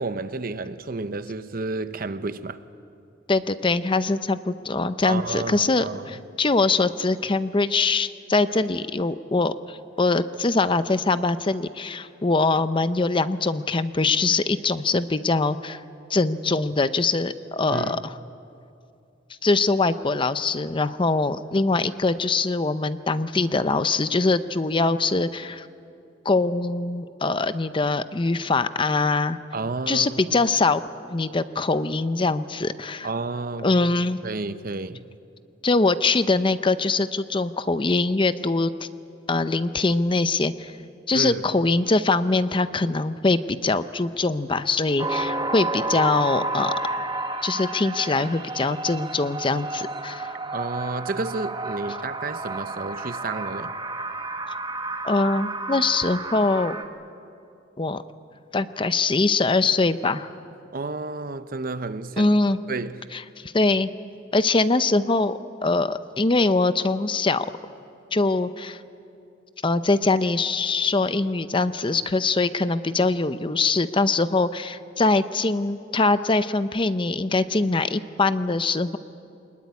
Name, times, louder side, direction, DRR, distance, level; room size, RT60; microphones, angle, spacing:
voice 1, 0.0-2.6 5.0-6.2 17.7-18.0 29.5-30.4 33.0-33.7 34.2-35.1 41.1-41.4 50.5-53.7 60.7-62.4 62.7-63.1, right 3 dB, 50° right, 0.8 m, -31 dB
voice 2, 3.3-15.8 16.1-18.1 19.4-25.7 26.2-29.4 29.9-30.8 31.1-33.1 33.6-34.2 35.6-38.7 39.3-40.8 41.1-46.7 47.4-50.3 55.0-56.8 57.8-58.0 58.5-60.3 62.2-62.6 63.1-63.9 64.3-67.5 68.1-68.8 69.6-79.0, left 3 dB, 25° left, 0.6 m, -23 dB
sound 1, 45.0-56.8, right 2 dB, 25° right, 1.1 m, -31 dB
24.5 x 21.0 x 9.6 m
head